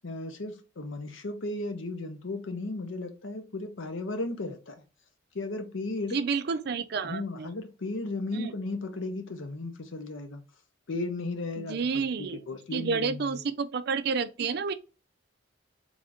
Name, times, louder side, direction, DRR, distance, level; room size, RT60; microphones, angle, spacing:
voice 1, 0.0-4.8 5.3-6.2 7.0-10.4 10.9-13.3, left 2 dB, 85° left, 0.7 m, -35 dB
voice 2, 6.1-7.5 8.3-8.5 11.7-12.4 12.7-14.7, right 5 dB, 55° right, 0.4 m, -30 dB
3.4 x 2.6 x 3.5 m
head